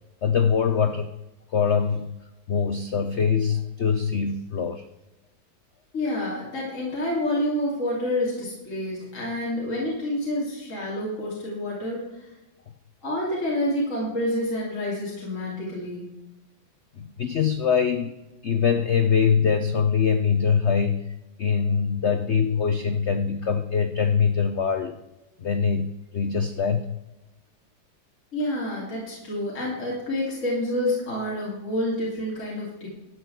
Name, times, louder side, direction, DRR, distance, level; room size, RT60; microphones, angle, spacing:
voice 1, 0.2-1.1 1.5-2.1 2.5-4.8 17.0-18.2 18.4-25.0 25.4-26.8, left 6 dB, 85° left, 9 dB, 0.6 m, -23 dB
voice 2, 5.9-12.1 13.0-16.1 28.3-32.9, left 1 dB, 40° left, -5 dB, 3.2 m, -28 dB
12.5 x 6.3 x 7.9 m, 1.0 s
omnidirectional pair, 2.1 m